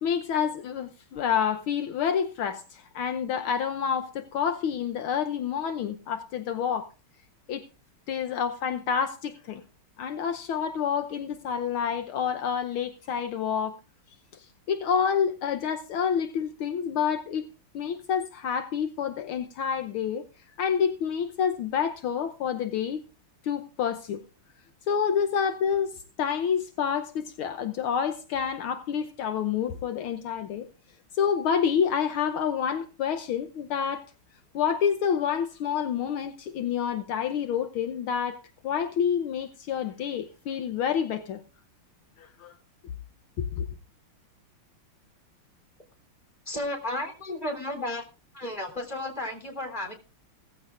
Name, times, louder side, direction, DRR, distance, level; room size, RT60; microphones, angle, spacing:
voice 1, 0.0-6.9 7.5-7.6 8.1-9.6 10.0-13.7 14.4-17.5 17.7-20.2 20.6-23.0 23.4-24.2 24.9-30.7 31.1-34.1 34.5-41.4 42.2-42.5 43.4-43.7, left 7 dB, 75° left, 1.7 m, -28 dB
voice 2, 46.5-48.1 48.3-49.9, left 1 dB, 20° left, 3.5 m, -33 dB
17.0 x 15.0 x 2.5 m
omnidirectional pair, 2.4 m